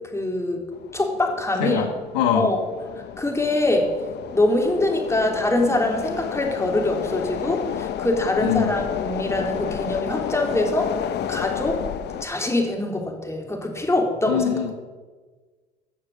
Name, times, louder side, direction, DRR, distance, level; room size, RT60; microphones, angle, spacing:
voice 1, 0.1-0.6 0.9-1.8 2.3-2.6 3.2-3.9 4.3-10.9 11.3-11.8 12.2-14.5, left 2 dB, 15° left, 1 dB, 3.4 m, -23 dB
sound 1, 0.7-12.2, left 10 dB, 55° left, 0.8 m, -31 dB
voice 2, 1.6-2.5 8.4-8.7 14.3-14.7, left 8 dB, 85° left, 6 dB, 1.4 m, -23 dB
16.0 x 6.5 x 7.4 m, 1.4 s
hypercardioid pair, 70°, 20 cm